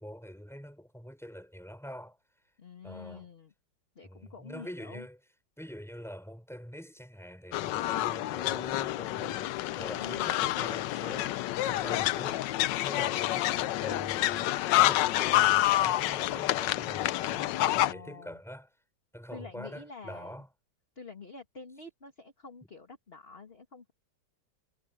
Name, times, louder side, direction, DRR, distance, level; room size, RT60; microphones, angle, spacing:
voice 1, 0.0-2.2 2.8-3.3 4.0-5.2 5.6-11.3 11.7-12.5 12.8-18.7 19.1-20.5, equal, ahead, 6.1 m, -45 dB
voice 2, 2.6-3.5 4.0-5.1 10.0-10.7 11.6-12.2 17.7-18.4 19.3-20.4 21.0-23.9, left 4 dB, 35° left, 2.2 m, -47 dB
sound 1, 7.5-17.9, left 15 dB, 80° left, 1.3 m, -28 dB
omnidirectional pair, 1.9 m